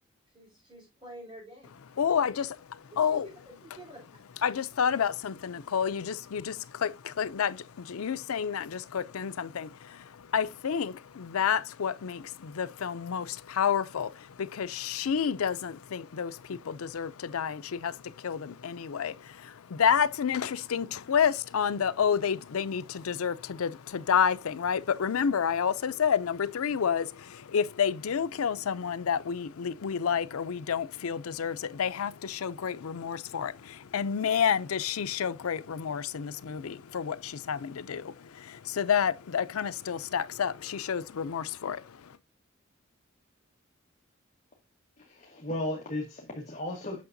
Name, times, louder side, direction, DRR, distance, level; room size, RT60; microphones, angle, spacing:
voice 1, 0.3-1.8 2.9-3.2 3.4-4.2, right 1 dB, 25° right, 4.4 m, -49 dB
voice 2, 2.0-3.3 4.4-42.2, left 7 dB, 85° left, 0.5 m, -30 dB
voice 3, 45.0-47.0, left 1 dB, 35° left, 1.4 m, -35 dB
8.5 x 6.3 x 2.6 m
head